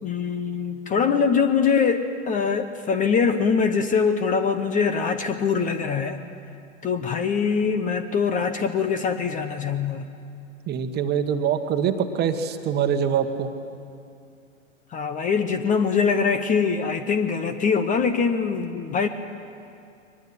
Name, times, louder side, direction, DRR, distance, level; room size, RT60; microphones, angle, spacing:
voice 1, 0.0-6.2 6.8-10.1 14.9-19.1, left 6 dB, 20° left, 10 dB, 1.1 m, -23 dB
voice 2, 10.7-13.5, right 8 dB, 25° right, 7 dB, 1.5 m, -24 dB
22.5 x 20.5 x 9.7 m, 2.4 s
hypercardioid pair, 110°, 39 cm